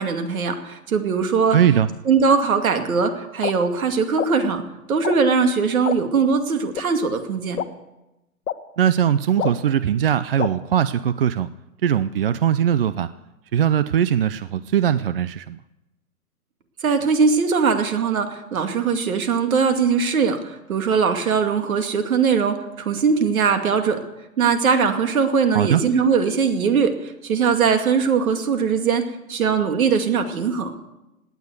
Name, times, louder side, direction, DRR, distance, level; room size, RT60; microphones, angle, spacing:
voice 1, 0.0-1.6 2.1-4.6 4.9-7.6 16.8-24.0 24.4-29.0 29.3-30.7, right 5 dB, 65° right, 7 dB, 2.4 m, -20 dB
voice 2, 1.5-1.9 8.8-11.5 11.8-13.1 13.5-15.6 25.5-25.8, right 9 dB, 40° right, 15 dB, 0.4 m, -20 dB
sound 1, 3.4-3.5 4.2-4.3 5.0-5.2 5.8-6.0 6.7-6.8 7.6-7.7 8.4-8.5 9.4-9.5 10.4-10.5, left 9 dB, 70° left, 1.3 m, -24 dB
18.0 x 9.7 x 8.1 m, 0.96 s
hypercardioid pair, 145°, 45 cm